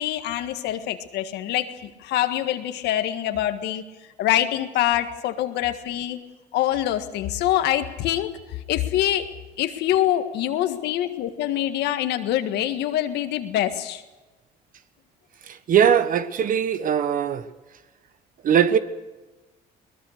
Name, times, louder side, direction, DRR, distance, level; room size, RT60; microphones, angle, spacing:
voice 1, 0.0-3.8 4.2-6.2 6.5-9.3 9.6-14.0, left 12 dB, 80° left, 1.7 m, -25 dB
voice 2, 15.7-17.4 18.4-18.8, right 8 dB, 55° right, 1.3 m, -20 dB
22.0 x 20.5 x 6.6 m
cardioid pair, 110°, 17 cm